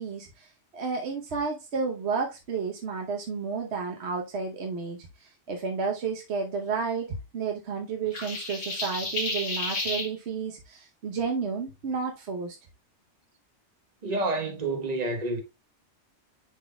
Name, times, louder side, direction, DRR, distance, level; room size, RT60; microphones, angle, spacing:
voice 1, 0.0-12.6, right 5 dB, 65° right, 1.2 m, -32 dB
sound 1, 8.1-10.1, left 2 dB, 85° left, 2.1 m, -31 dB
voice 2, 14.0-15.4, right 2 dB, 35° right, 1.3 m, -28 dB
10.5 x 4.0 x 2.2 m
omnidirectional pair, 1.2 m